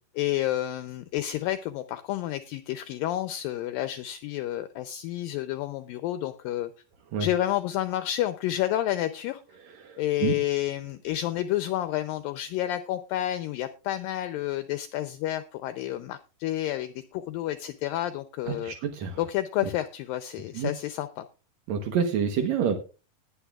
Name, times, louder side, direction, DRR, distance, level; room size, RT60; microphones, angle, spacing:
voice 1, 0.1-6.7 7.2-9.4 10.0-18.7 19.2-21.3, left 13 dB, 80° left, 10 dB, 2.1 m, -30 dB
voice 2, 9.8-10.3 18.6-19.2 20.5-20.7 21.7-22.8, right 7 dB, 70° right, 5 dB, 1.7 m, -27 dB
20.0 x 8.6 x 2.4 m, 0.32 s
omnidirectional pair, 4.5 m